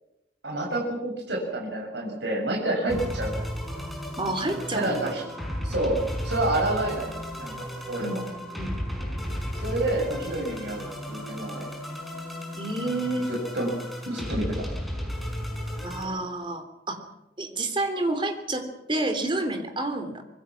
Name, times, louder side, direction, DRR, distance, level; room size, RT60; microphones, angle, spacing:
voice 1, 0.4-3.4 4.7-5.2 5.6-6.0 6.2-8.2 9.5-11.7 13.3-13.7 14.1-14.6, right 1 dB, 70° right, -1 dB, 6.5 m, -29 dB
sound 1, 2.9-16.0, equal, ahead, 5.4 m, -34 dB
voice 2, 4.2-5.1 8.0-8.2 8.6-8.8 12.6-13.3 15.8-17.0 17.4-20.2, right 2 dB, 25° right, 7 dB, 3.4 m, -29 dB
26.0 x 21.0 x 6.1 m, 0.88 s
head